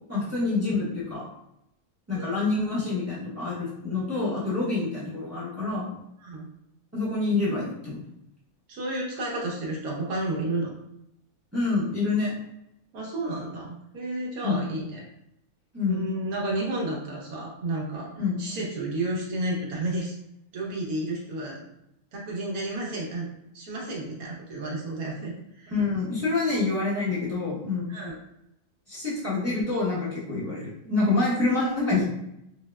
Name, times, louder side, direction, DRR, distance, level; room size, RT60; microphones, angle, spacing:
voice 1, 0.1-1.3 2.1-5.9 6.9-8.0 11.5-12.3 14.4-14.6 15.7-16.0 18.2-18.4 25.7-28.0 28.9-32.0, left 3 dB, 15° right, -8 dB, 0.6 m, -27 dB
voice 2, 2.1-2.5 6.2-6.5 8.7-10.7 12.9-15.0 15.9-20.2 20.5-21.7 22.1-25.7 27.9-28.2, right 2 dB, 90° right, -2 dB, 1.3 m, -32 dB
4.3 x 2.1 x 2.2 m, 0.81 s
omnidirectional pair, 1.5 m